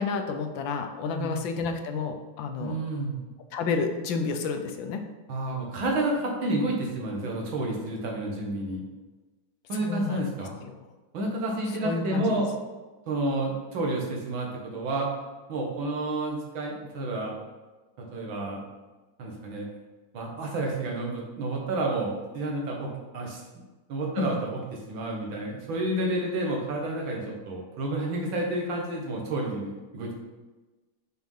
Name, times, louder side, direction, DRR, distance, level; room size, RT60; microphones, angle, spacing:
voice 1, 0.0-2.8 3.5-5.0 9.8-10.2 10.6-10.7 11.8-12.4 24.2-24.3, left 5 dB, 85° left, 6 dB, 1.5 m, -30 dB
voice 2, 2.6-3.2 5.3-8.8 9.7-10.6 11.1-12.5 13.1-15.1 15.5-17.3 18.0-18.6 19.2-19.7 20.1-23.4 23.9-24.6 24.9-30.1, right 2 dB, 90° right, -1 dB, 2.2 m, -30 dB
6.2 x 4.6 x 5.4 m, 1.2 s
omnidirectional pair, 2.1 m